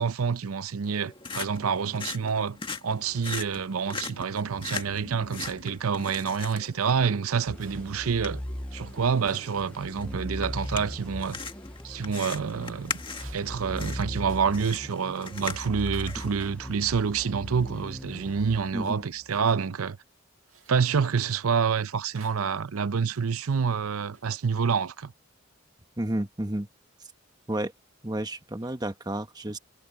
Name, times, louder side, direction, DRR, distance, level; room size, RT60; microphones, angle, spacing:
voice 1, 0.0-2.6 2.8-8.4 8.7-11.4 11.8-13.0 13.3-20.0 20.7-25.1, right 6 dB, 90° right, 0.6 m, -27 dB
sound 1, 0.8-16.4, left 5 dB, 25° left, 1.8 m, -41 dB
sound 2, 6.6-6.9 7.6-8.4 8.7-8.9 9.3-9.7 11.7-12.2 12.6-14.8 15.1-15.4 15.7-16.7 17.6-17.9 18.2-18.3 19.3-19.6 20.5-20.9 22.1-22.6 23.6-24.4, right 5 dB, 70° right, 2.3 m, -54 dB
sound 3, 7.5-19.3, equal, 5° left, 0.5 m, -39 dB
voice 2, 18.7-19.1 26.0-26.7 27.5-27.7 28.0-29.6, right 1 dB, 20° right, 1.3 m, -31 dB
head